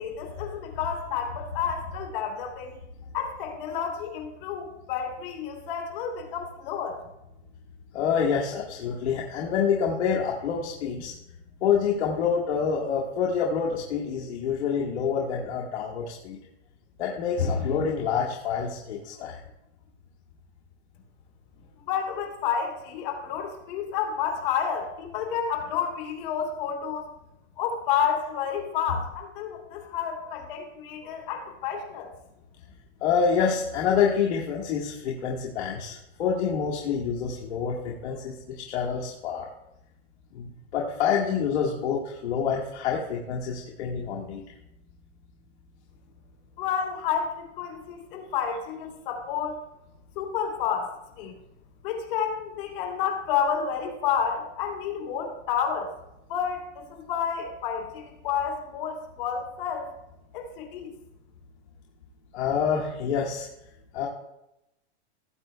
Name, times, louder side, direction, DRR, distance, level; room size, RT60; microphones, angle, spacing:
voice 1, 0.0-2.7 3.1-7.0 21.8-27.1 27.6-32.1 46.6-49.6 50.1-50.9 51.2-51.4 51.8-55.9 56.3-59.9 60.3-60.9, left 7 dB, 50° left, -1 dB, 3.0 m, -30 dB
voice 2, 7.9-11.1 11.6-16.4 17.0-19.4 28.9-29.0 29.8-30.2 31.0-31.1 33.0-39.5 40.3-44.4 62.3-63.5 63.9-64.1, left 6 dB, 70° left, -3 dB, 1.6 m, -27 dB
18.0 x 8.2 x 2.2 m, 0.89 s
supercardioid pair, 165°, 35 cm